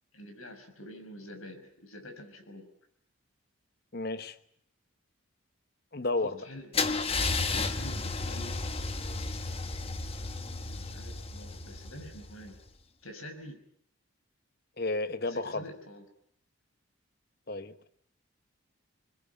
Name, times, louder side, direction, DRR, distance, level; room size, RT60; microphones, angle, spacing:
voice 1, 0.1-2.7 6.2-8.8 10.5-12.6 13.0-13.6 15.2-16.1, left 1 dB, 85° left, 5.8 m, -47 dB
voice 2, 3.9-4.4 5.9-6.5 14.8-15.7 17.5-17.9, left 2 dB, 45° left, 1.3 m, -32 dB
Car / Engine starting / Idling, 6.7-12.6, left 3 dB, 30° left, 1.3 m, -33 dB
28.5 x 20.5 x 9.4 m
head